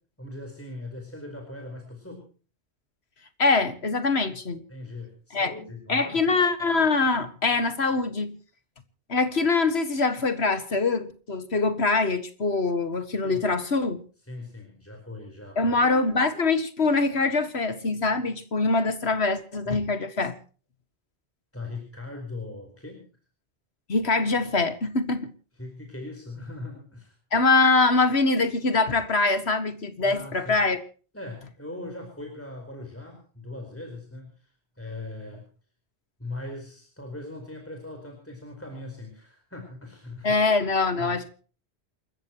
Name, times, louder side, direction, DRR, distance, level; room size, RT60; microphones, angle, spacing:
voice 1, 0.2-2.3 4.7-6.2 13.2-13.4 14.3-15.7 19.7-19.8 21.5-23.1 25.6-27.1 30.0-30.6 31.1-34.5 34.8-35.4 36.2-40.4 41.0-41.1, left 2 dB, 10° left, 4.7 m, -40 dB
voice 2, 3.4-4.6 5.3-5.5 5.9-8.3 9.1-14.0 15.6-20.4 23.9-25.3 27.3-30.8 40.2-41.3, left 3 dB, 75° left, 2.1 m, -23 dB
28.5 x 14.5 x 3.0 m
omnidirectional pair, 1.1 m